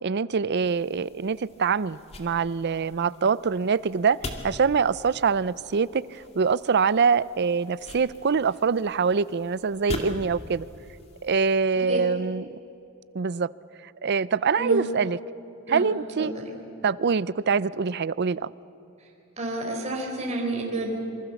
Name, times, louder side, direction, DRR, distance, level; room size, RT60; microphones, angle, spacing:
voice 1, 0.0-4.2 4.4-10.7 11.2-12.4 13.1-13.5 14.0-15.2 15.7-16.3 16.8-18.5, right 5 dB, 55° right, 18 dB, 0.5 m, -24 dB
sound 1, 0.6-11.6, left 1 dB, 30° left, 2.4 m, -42 dB
voice 2, 16.2-16.5 19.0-19.1 19.4-21.0, right 2 dB, 35° right, -1 dB, 4.0 m, -30 dB
26.5 x 24.0 x 7.1 m, 2.9 s
head